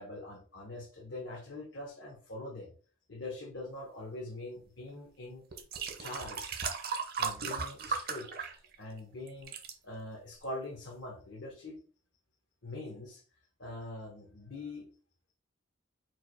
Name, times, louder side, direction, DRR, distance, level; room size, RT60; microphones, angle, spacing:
voice 1, 0.0-2.7 3.1-5.4 6.0-6.6 7.2-9.5 9.8-11.8 12.6-13.2 13.6-14.9, left 2 dB, 70° left, -3 dB, 1.1 m, -43 dB
sound 1, 4.9-5.0 5.5-9.0 9.3-9.7 10.4-10.5, right 5 dB, 50° right, 0.6 m, -36 dB
4.7 x 2.2 x 4.5 m, 0.39 s
head